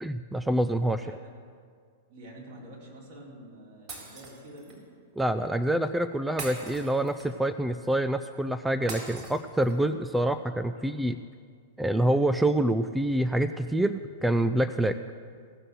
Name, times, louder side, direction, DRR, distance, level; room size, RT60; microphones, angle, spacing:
voice 1, 0.0-1.2 5.2-11.2 11.8-14.9, right 1 dB, 5° right, 11 dB, 0.4 m, -26 dB
voice 2, 1.0-1.4 2.1-4.9 10.8-10.9, right 1 dB, 60° right, -4 dB, 4.4 m, -48 dB
Shatter, 3.9-4.8 6.4-7.5 8.9-9.9, right 3 dB, 40° right, 3.8 m, -41 dB
17.0 x 6.5 x 7.8 m, 2.1 s
hypercardioid pair, 110°, 0 cm